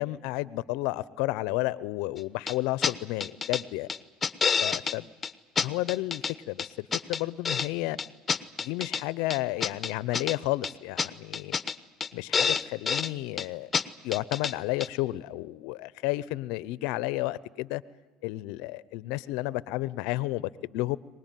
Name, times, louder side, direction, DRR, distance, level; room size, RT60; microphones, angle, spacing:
voice 1, 0.0-3.9 4.6-5.1 5.6-8.0 8.6-11.5 12.1-13.7 14.0-17.8 18.2-21.0, left 18 dB, 70° left, 19 dB, 0.7 m, -31 dB
sound 1, 2.5-2.6 2.8-2.9 3.2-3.6 3.9-4.9 5.2-5.3 5.6-6.3 6.6-7.7 8.0-9.0 9.3-10.4 10.6-10.7 11.0-11.1 11.3-11.7 12.0-12.1 12.3-13.1 13.4-13.5 13.7-13.8 14.1-14.5 14.8-14.9, left 6 dB, 25° left, 1.1 m, -28 dB
23.5 x 20.5 x 9.3 m, 1.2 s
hypercardioid pair, 85°, 0 cm